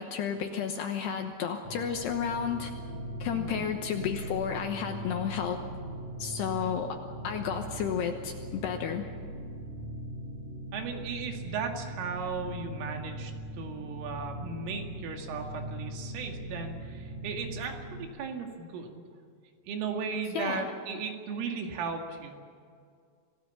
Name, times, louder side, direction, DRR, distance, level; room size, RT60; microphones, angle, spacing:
voice 1, 0.0-2.7 3.2-5.6 6.2-7.0 7.2-9.1 20.3-20.7, left 7 dB, 70° left, 4 dB, 2.7 m, -32 dB
sound 1, 1.6-18.1, right 1 dB, 40° right, 4.6 m, -40 dB
voice 2, 3.3-3.7 10.7-19.0 19.7-22.4, right 5 dB, 75° right, 3 dB, 4.7 m, -36 dB
27.0 x 17.5 x 7.1 m, 2.3 s
omnidirectional pair, 5.8 m